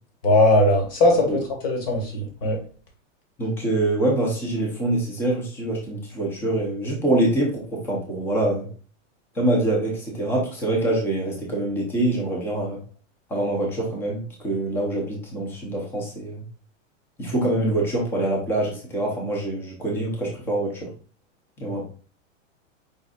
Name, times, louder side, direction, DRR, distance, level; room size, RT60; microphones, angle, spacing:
voice 1, 0.2-2.6, left 1 dB, 45° left, 1 dB, 1.7 m, -19 dB
voice 2, 3.4-8.7 9.3-12.8 13.3-16.4 17.2-20.9 21.6-21.8, right 1 dB, 5° left, -1 dB, 0.6 m, -25 dB
5.1 x 4.0 x 2.3 m, 0.39 s
supercardioid pair, 175°, 39 cm